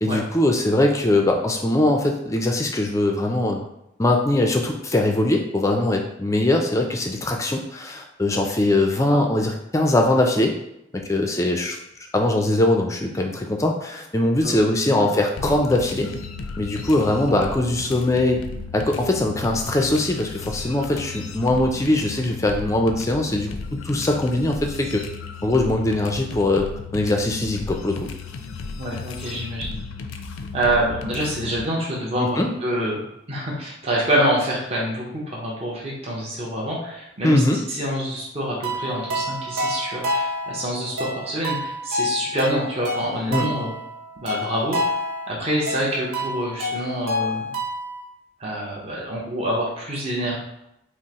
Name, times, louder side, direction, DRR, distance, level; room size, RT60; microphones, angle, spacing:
voice 1, 0.0-3.6 4.0-10.5 10.9-11.8 12.1-16.1 16.6-18.4 18.7-25.0 25.4-28.1 32.2-32.5 37.2-37.6 43.3-43.5, left 1 dB, 15° left, 2 dB, 0.4 m, -21 dB
sound 1, 15.4-31.7, left 4 dB, 85° left, 0.4 m, -35 dB
voice 2, 28.7-29.8 30.5-33.0 33.3-37.4 37.7-43.7 44.2-44.8 45.3-47.5 48.4-50.4, right 1 dB, 30° right, -4 dB, 0.7 m, -26 dB
sound 2, 38.6-48.0, left 1 dB, 90° right, 0.9 m, -28 dB
5.3 x 2.0 x 2.9 m, 0.83 s
head